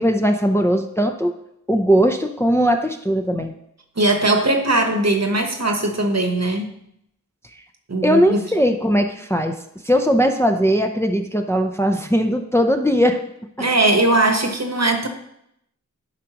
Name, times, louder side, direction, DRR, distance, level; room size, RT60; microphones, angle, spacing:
voice 1, 0.0-1.4 1.7-3.5 8.0-9.6 9.8-13.2, equal, 10° left, 4 dB, 0.6 m, -19 dB
voice 2, 4.0-6.7 7.9-8.4 13.6-15.1, right 2 dB, 55° right, 4 dB, 1.1 m, -19 dB
11.5 x 5.0 x 3.0 m, 0.76 s
wide cardioid pair, 45°, 31 cm